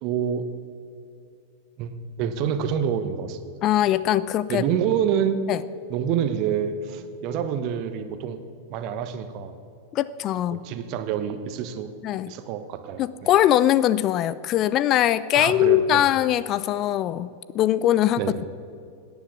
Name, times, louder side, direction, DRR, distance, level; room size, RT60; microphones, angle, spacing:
voice 1, 0.0-0.5 1.8-3.4 4.5-5.4 5.9-8.4 8.7-9.5 10.5-11.9 12.3-13.0 15.3-16.0 18.2-18.4, right 8 dB, 40° right, 10 dB, 1.1 m, -27 dB
voice 2, 3.6-4.6 5.5-5.6 9.9-10.6 12.0-12.3 13.0-18.4, left 12 dB, 35° left, 17 dB, 0.4 m, -21 dB
17.5 x 9.5 x 6.1 m, 2.5 s
figure-of-eight pair, 90°, 0 cm